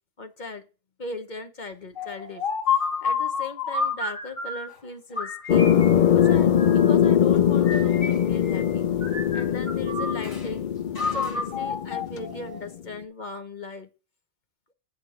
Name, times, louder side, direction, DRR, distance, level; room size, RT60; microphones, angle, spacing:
voice 1, 0.2-0.6 1.0-2.4 3.0-5.7 6.1-8.9 9.3-10.7 11.0-13.9, left 3 dB, 35° left, 7 dB, 1.1 m, -38 dB
sound 1, 2.0-4.7 5.2-7.0 7.6-8.7 9.0-10.5 10.9-12.7, left 5 dB, 75° left, 2.9 m, -30 dB
sound 2, 5.5-12.7, left 9 dB, 60° left, 0.5 m, -22 dB
8.3 x 5.0 x 6.9 m, 0.33 s
omnidirectional pair, 1.4 m